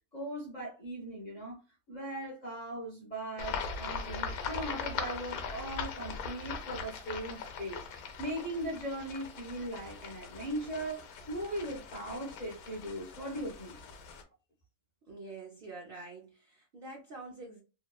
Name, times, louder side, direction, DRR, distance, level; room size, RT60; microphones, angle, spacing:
voice 1, 0.1-1.6 1.9-7.8 8.2-13.8, right 1 dB, 45° left, 0.6 m, -39 dB
sound 1, 3.4-14.2, left 5 dB, 75° left, 1.0 m, -40 dB
voice 2, 15.0-17.6, right 3 dB, 85° right, 0.5 m, -46 dB
2.8 x 2.2 x 2.2 m
omnidirectional pair, 1.6 m